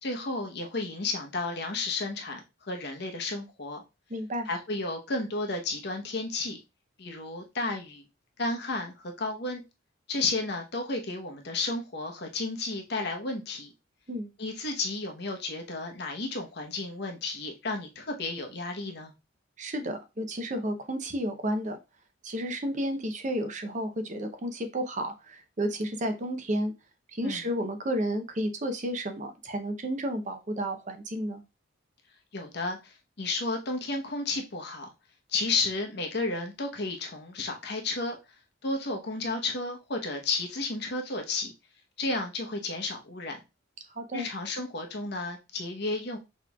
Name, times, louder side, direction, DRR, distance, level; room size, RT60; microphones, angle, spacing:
voice 1, 0.0-3.8 4.5-6.6 7.0-8.1 8.4-9.6 10.1-13.7 14.4-19.1 27.2-27.4 32.3-34.9 35.3-38.2 38.6-41.5 42.0-43.4 44.1-46.2, left 3 dB, 60° left, 0.9 m, -32 dB
voice 2, 4.1-4.5 14.1-14.3 19.6-21.8 22.2-26.7 27.1-31.4 44.0-44.3, equal, 40° right, 0.7 m, -32 dB
5.9 x 3.0 x 2.3 m
head